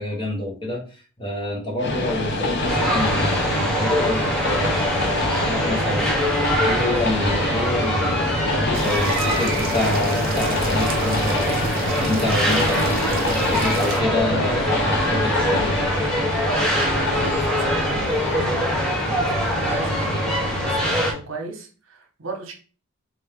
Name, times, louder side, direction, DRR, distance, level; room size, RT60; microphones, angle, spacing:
voice 1, 0.0-16.3, left 2 dB, 25° left, -2 dB, 1.0 m, -28 dB
Train, 1.8-20.9, left 2 dB, 50° left, 0.6 m, -26 dB
sound 1, 2.7-21.1, equal, 5° left, 0.7 m, -24 dB
sound 2, 8.7-14.0, right 4 dB, 45° right, 0.8 m, -34 dB
voice 2, 16.5-22.5, right 3 dB, 70° right, 2 dB, 1.0 m, -35 dB
4.4 x 2.6 x 3.4 m, 0.38 s
head